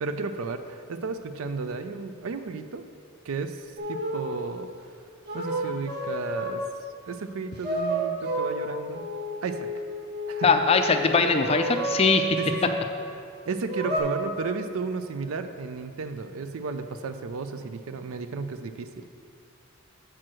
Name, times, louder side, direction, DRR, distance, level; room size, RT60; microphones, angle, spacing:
voice 1, 0.0-2.8 3.2-3.6 3.9-4.7 5.3-6.6 7.1-9.0 9.4-9.7 10.3-10.5 12.4-12.5 13.5-19.0, right 4 dB, 75° right, 10 dB, 0.4 m, -33 dB
sound 1, 3.8-4.4 5.2-6.8 7.6-12.9 13.7-14.0, right 1 dB, 50° right, 1.4 m, -31 dB
voice 2, 10.4-12.2, left 4 dB, 25° left, 7 dB, 0.4 m, -21 dB
7.4 x 4.6 x 6.1 m, 2.3 s
head